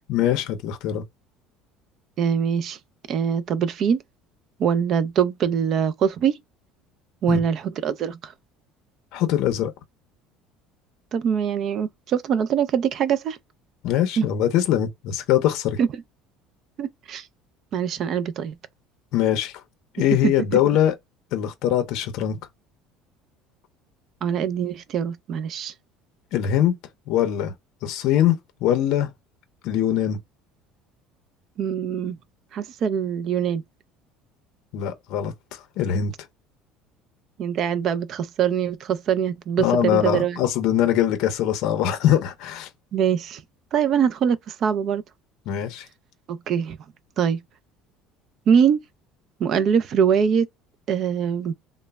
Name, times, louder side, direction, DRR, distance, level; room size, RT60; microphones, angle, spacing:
voice 1, 0.1-1.0 7.3-7.4 9.1-9.7 13.8-15.8 19.1-19.6 19.9-20.9 21.3-22.4 26.3-26.7 27.1-27.5 27.8-29.1 29.6-30.2 34.7-36.1 39.6-42.7 45.5-45.9, left 11 dB, 55° left, 0.5 m, -22 dB
voice 2, 2.2-2.8 3.1-4.0 4.6-6.4 7.2-8.3 11.1-13.4 14.2-14.3 15.8-15.9 16.8-17.2 17.7-18.5 20.2-20.3 24.2-25.7 31.6-32.2 32.5-33.6 37.4-40.4 42.9-43.4 43.7-45.0 46.3-46.8 47.2-47.4 48.5-48.8 49.4-50.5 50.9-51.5, right 8 dB, 35° right, 0.3 m, -23 dB
3.1 x 2.0 x 2.2 m
cardioid pair, 170°, 0 cm